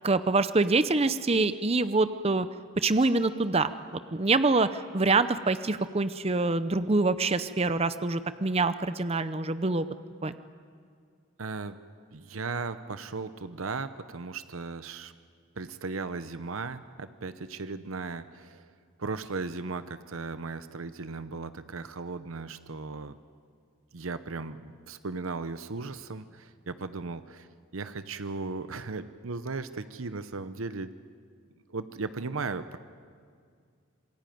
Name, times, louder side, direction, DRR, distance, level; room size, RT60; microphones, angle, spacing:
voice 1, 0.0-2.5 2.8-3.7 4.1-9.9 10.2-10.3, right 3 dB, 30° right, 12 dB, 0.7 m, -25 dB
voice 2, 11.4-11.8 12.1-15.1 15.6-18.7 19.0-23.2 23.9-27.5 27.7-30.9 31.7-32.8, right 4 dB, 80° right, 12 dB, 0.9 m, -36 dB
26.5 x 21.5 x 9.3 m, 2.2 s
head